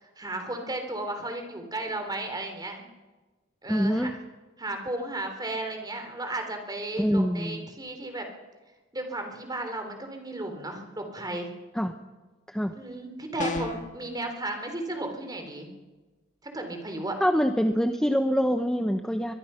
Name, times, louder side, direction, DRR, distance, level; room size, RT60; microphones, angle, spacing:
voice 1, 0.2-2.8 3.6-4.1 4.6-8.3 8.9-11.5 12.7-15.7 16.5-17.2, right 2 dB, 20° right, 5 dB, 3.5 m, -34 dB
voice 2, 3.7-4.1 7.0-7.7 11.7-11.9 12.5-12.7 17.2-19.3, equal, 5° left, 6 dB, 0.8 m, -25 dB
sound 1, 13.4-13.9, left 2 dB, 40° left, 2.0 m, -31 dB
23.0 x 21.5 x 5.7 m, 1.2 s
head